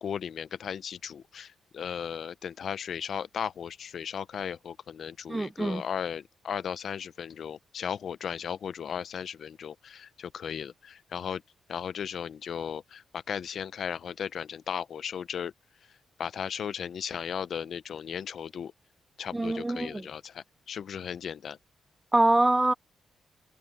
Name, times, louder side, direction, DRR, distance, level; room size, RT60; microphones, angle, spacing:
voice 1, 0.0-11.4 11.7-15.5 16.2-18.7 19.2-21.6, left 8 dB, 65° left, 0.7 m, -36 dB
voice 2, 5.3-5.8 19.3-20.1 22.1-22.7, right 2 dB, 15° right, 0.6 m, -24 dB
cardioid pair, 90°, 0 cm